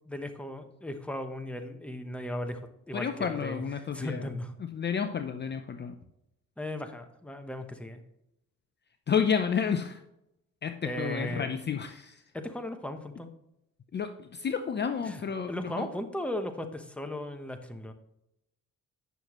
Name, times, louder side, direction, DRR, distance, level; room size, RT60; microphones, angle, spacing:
voice 1, 0.1-2.6 2.9-3.6 3.9-4.5 6.6-8.0 10.8-11.5 12.3-13.3 15.0-15.2 15.5-17.9, left 1 dB, 5° left, 7 dB, 1.0 m, -36 dB
voice 2, 2.9-4.3 4.6-5.9 9.1-10.0 10.6-12.2 13.9-15.9, left 7 dB, 35° left, 8 dB, 0.6 m, -31 dB
9.1 x 6.5 x 3.1 m, 0.84 s
cardioid pair, 90°, 30 cm